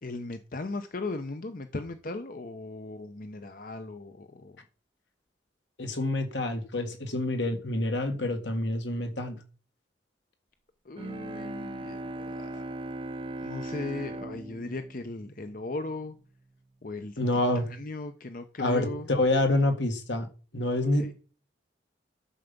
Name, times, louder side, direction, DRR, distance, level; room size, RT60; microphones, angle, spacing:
voice 1, 0.0-4.6 10.8-12.6 13.4-16.2 16.8-17.2 17.7-19.1 21.0-21.1, left 2 dB, 50° left, 0.7 m, -37 dB
voice 2, 5.8-9.4 17.2-17.7 18.6-20.3 20.5-21.1, left 1 dB, 75° left, 1.8 m, -27 dB
Bowed string instrument, 11.0-16.1, right 2 dB, 30° right, 0.6 m, -39 dB
11.5 x 7.0 x 5.3 m
head